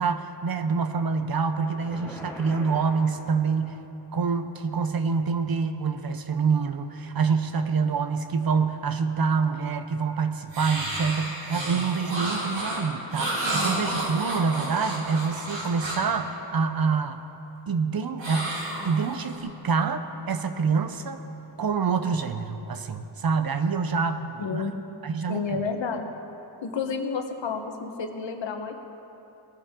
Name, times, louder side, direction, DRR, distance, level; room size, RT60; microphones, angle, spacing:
voice 1, 0.0-3.8 4.1-17.2 17.7-18.6 18.8-21.2 21.6-24.6 25.0-25.6, right 5 dB, 50° right, 8 dB, 0.8 m, -26 dB
sound 1, 1.6-3.9, left 1 dB, 5° left, 1.3 m, -43 dB
sound 2, 10.5-16.1 18.2-19.4, right 1 dB, 85° right, 3.7 m, -31 dB
voice 2, 24.4-24.7 25.3-26.1 26.6-28.7, left 5 dB, 75° left, 5 dB, 1.2 m, -30 dB
19.0 x 13.5 x 3.7 m, 2.9 s
wide cardioid pair, 145°, 45 cm